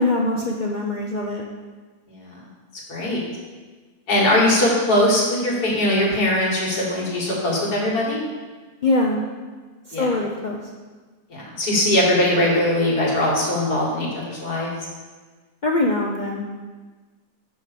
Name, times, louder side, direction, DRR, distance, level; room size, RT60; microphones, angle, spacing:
voice 1, 0.0-1.4 8.8-9.2 9.9-10.6 15.6-16.4, left 2 dB, 65° left, 0 dB, 0.4 m, -22 dB
voice 2, 2.1-2.4 2.9-3.2 4.1-8.2 9.9-10.1 11.3-14.7, left 1 dB, 85° left, -4 dB, 2.5 m, -21 dB
6.2 x 5.2 x 6.7 m, 1.4 s
omnidirectional pair, 1.6 m